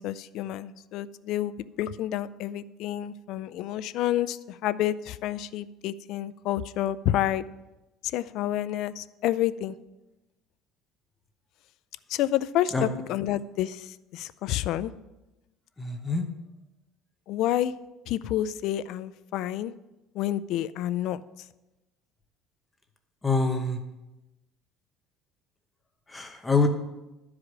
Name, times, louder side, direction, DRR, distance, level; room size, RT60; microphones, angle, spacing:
voice 1, 0.0-7.4 8.0-9.8 12.1-14.9 17.3-17.7 18.1-19.7 20.1-21.2, left 12 dB, 60° left, 15 dB, 0.4 m, -29 dB
voice 2, 15.8-16.2 23.2-23.8 26.1-26.7, left 3 dB, 10° left, 4 dB, 0.9 m, -25 dB
12.0 x 4.9 x 6.1 m, 1.0 s
cardioid pair, 145°, 0 cm